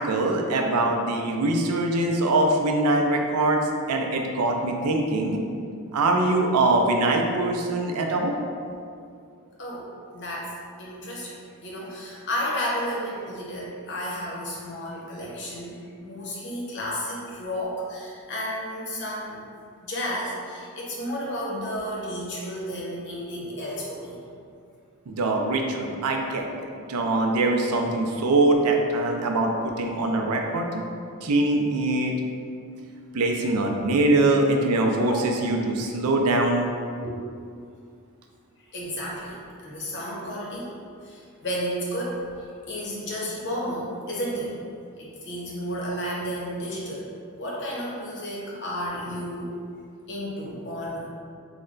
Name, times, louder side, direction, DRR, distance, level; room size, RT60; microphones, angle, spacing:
voice 1, 0.0-3.6 3.9-5.4 5.9-8.4 25.1-26.5 26.9-29.5 29.8-30.8 31.2-32.1 33.1-36.7 37.0-37.1, right 2 dB, 85° right, 2 dB, 0.4 m, -23 dB
voice 2, 10.1-10.5 10.8-11.3 11.6-19.4 19.8-24.2 35.0-35.2 38.7-39.4 39.6-40.7 41.0-42.3 42.7-44.5 45.0-47.1 47.4-49.5 50.1-51.1, equal, 50° left, -4 dB, 0.7 m, -32 dB
3.2 x 2.1 x 3.7 m, 2.3 s
head